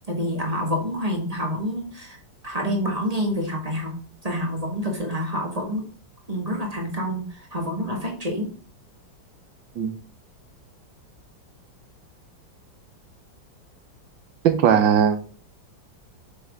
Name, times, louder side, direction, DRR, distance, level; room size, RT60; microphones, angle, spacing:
voice 1, 0.1-2.2 2.4-3.9 4.2-5.9 6.3-8.5, equal, 20° right, 1.6 m, -27 dB
voice 2, 14.4-15.2, right 8 dB, 85° right, 1.6 m, -18 dB
7.9 x 6.0 x 3.6 m
omnidirectional pair, 2.0 m